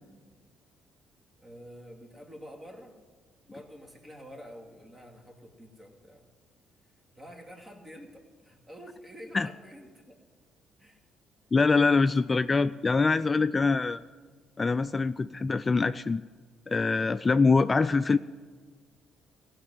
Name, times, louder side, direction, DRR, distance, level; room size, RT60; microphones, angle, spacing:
voice 1, 1.4-2.9 3.5-6.3 7.1-10.2 10.8-11.0, equal, 25° right, 2 dB, 2.5 m, -48 dB
voice 2, 11.5-14.0 14.6-16.2 16.7-18.2, left 4 dB, 30° left, 14 dB, 0.3 m, -24 dB
16.0 x 5.9 x 9.3 m, 1.5 s
supercardioid pair, 60°, 0 cm